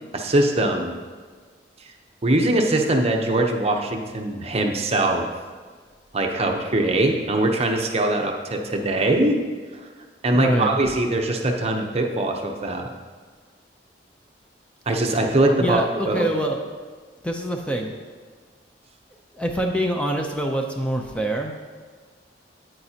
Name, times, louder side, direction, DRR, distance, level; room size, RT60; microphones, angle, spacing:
voice 1, 0.1-1.0 2.2-5.3 6.1-9.4 10.2-12.9 14.9-16.3, right 1 dB, 35° right, 2 dB, 0.8 m, -22 dB
voice 2, 10.3-10.9 15.6-16.6 17.2-17.9 19.3-21.5, right 1 dB, 5° left, 2 dB, 0.5 m, -25 dB
9.3 x 8.9 x 2.8 m, 1.5 s
head